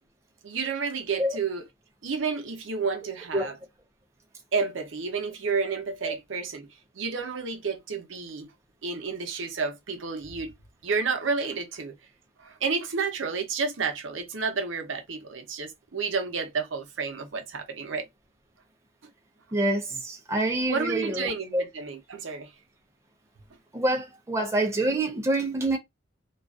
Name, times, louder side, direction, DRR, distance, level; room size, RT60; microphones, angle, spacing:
voice 1, 0.4-1.6 2.0-3.6 4.5-6.7 6.9-8.5 8.8-10.5 10.8-11.9 12.4-18.1 20.7-22.5, right 5 dB, 70° right, 0.6 m, -30 dB
voice 2, 19.5-21.6 23.7-25.8, right 1 dB, 15° right, 0.4 m, -26 dB
2.4 x 2.3 x 2.3 m
head